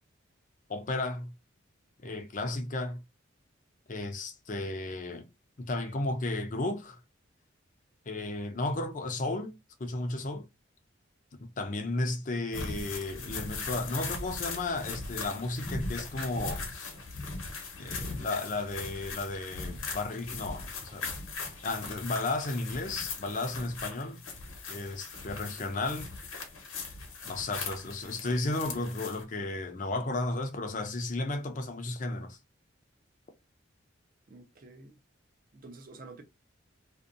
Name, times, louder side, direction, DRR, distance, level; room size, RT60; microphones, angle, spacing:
voice 1, 0.7-1.3 2.0-3.0 3.9-5.3 5.6-7.0 8.1-9.5 9.8-10.5 11.4-16.9 17.8-21.1 21.6-24.2 24.7-26.1 27.2-32.4, left 2 dB, 40° left, 0.5 m, -34 dB
sound 1, 12.5-29.2, left 4 dB, 85° left, 0.9 m, -39 dB
voice 2, 34.3-35.0 35.5-36.2, right 3 dB, 45° right, 0.5 m, -49 dB
2.6 x 2.2 x 2.4 m
head